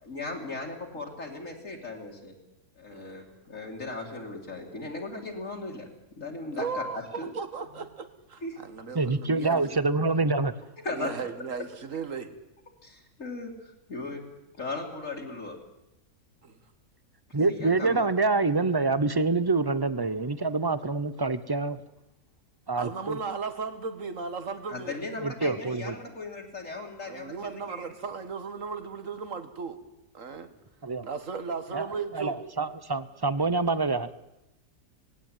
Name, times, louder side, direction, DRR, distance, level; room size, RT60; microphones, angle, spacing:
voice 1, 0.0-2.4 2.8-5.9 6.1-7.3 8.4-8.6 10.8-11.1 12.8-14.2 14.6-15.6 17.5-18.1 24.7-27.9, left 2 dB, 55° left, -1 dB, 2.9 m, -37 dB
voice 2, 2.9-3.2 6.6-9.8 10.9-12.3 16.4-16.6 22.7-25.0 27.1-29.8 30.1-30.5 31.0-32.4, right 5 dB, 55° right, 10 dB, 2.0 m, -36 dB
voice 3, 8.9-10.5 17.3-21.8 22.7-23.2 25.2-26.0 30.8-31.1 31.7-31.9 32.1-34.1, right 3 dB, 25° right, 15 dB, 0.5 m, -26 dB
19.0 x 17.0 x 9.4 m, 0.92 s
omnidirectional pair, 1.6 m